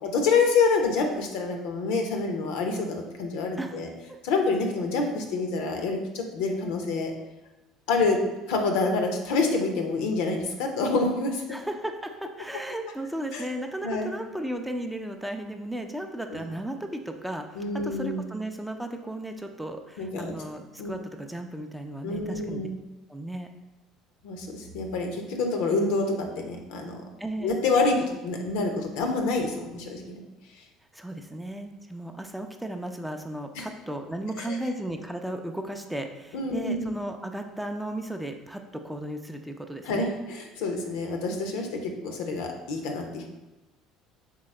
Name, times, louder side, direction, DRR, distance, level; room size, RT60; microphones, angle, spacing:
voice 1, 0.0-3.9 4.2-7.1 7.9-8.2 8.5-11.4 13.3-13.4 13.8-14.1 16.3-16.4 17.6-18.2 20.0-20.3 20.8-20.9 22.0-22.7 24.2-27.0 27.4-28.0 28.2-30.2 33.6-33.7 34.4-34.6 36.3-36.9 39.8-41.7 42.0-43.3, left 3 dB, 70° left, 3 dB, 0.6 m, -27 dB
voice 2, 3.6-4.2 11.5-22.7 23.1-23.5 27.2-27.5 30.9-40.1, right 1 dB, 5° right, 4 dB, 0.4 m, -35 dB
3.7 x 3.4 x 3.2 m, 1.0 s
hypercardioid pair, 60°, 0 cm